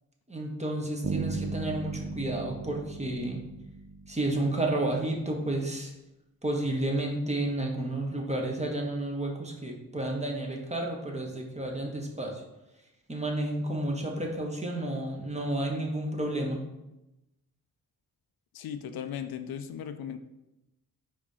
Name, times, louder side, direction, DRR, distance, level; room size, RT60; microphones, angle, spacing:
voice 1, 0.3-3.4 4.1-5.9 6.4-12.3 13.1-16.6, right 1 dB, 20° right, 0 dB, 1.3 m, -31 dB
Bass guitar, 1.0-4.8, right 4 dB, 35° right, 0.6 m, -37 dB
voice 2, 18.5-20.2, left 8 dB, 80° left, 9 dB, 0.5 m, -37 dB
4.8 x 3.6 x 5.6 m, 0.95 s
cardioid pair, 80°, 36 cm